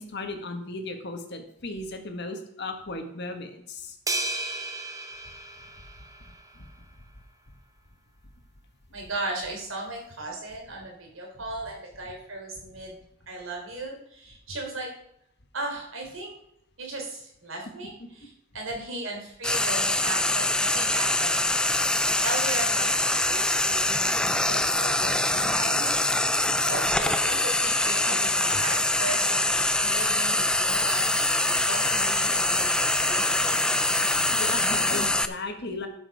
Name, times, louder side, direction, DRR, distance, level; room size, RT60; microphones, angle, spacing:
voice 1, 0.0-4.0 6.6-6.7 18.0-18.1 26.9-27.0 33.9-35.9, left 2 dB, 55° left, 6 dB, 1.5 m, -36 dB
sound 1, 4.1-6.6, right 2 dB, 15° right, 0.8 m, -33 dB
voice 2, 8.9-13.0 13.3-14.9 15.5-16.3 16.8-26.0 26.7-33.7, right 2 dB, 70° right, 0 dB, 3.7 m, -36 dB
Frying (food), 19.4-35.3, left 1 dB, 5° left, 0.3 m, -24 dB
sound 2, 28.3-35.3, left 7 dB, 30° left, 0.7 m, -43 dB
12.0 x 6.4 x 4.8 m, 0.73 s
head